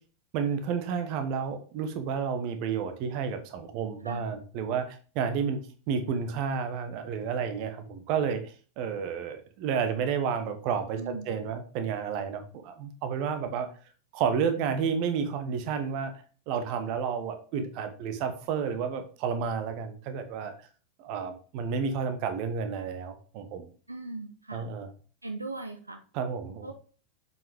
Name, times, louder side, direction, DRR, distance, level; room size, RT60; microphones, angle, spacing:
voice 1, 0.3-13.7 14.1-16.1 16.5-20.5 21.0-23.7 24.5-24.9 26.1-26.7, right 6 dB, 45° right, 9 dB, 1.2 m, -31 dB
voice 2, 11.0-11.3 23.9-24.7 25.2-26.0 26.6-26.7, right 2 dB, 85° right, 5 dB, 0.8 m, -38 dB
7.3 x 5.5 x 3.5 m, 0.40 s
figure-of-eight pair, 90°, 0 cm